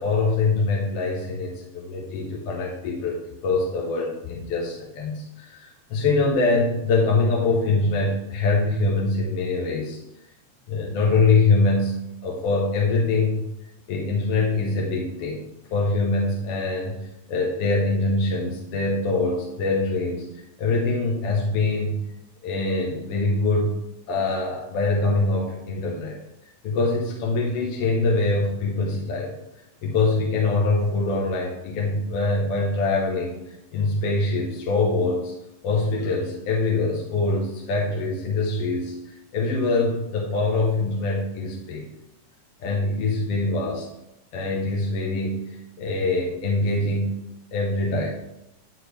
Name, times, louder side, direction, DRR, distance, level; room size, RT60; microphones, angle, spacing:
voice 1, 0.0-10.0 10.7-13.5 13.9-15.4 15.7-17.0 17.3-20.3 20.6-22.0 22.4-23.8 24.1-26.2 26.6-29.3 29.8-33.4 33.7-35.3 35.6-41.9 42.6-43.9 44.3-47.2 47.5-48.1, left 3 dB, 60° left, -2 dB, 1.8 m, -24 dB
11.5 x 4.3 x 3.3 m, 0.85 s
omnidirectional pair, 3.4 m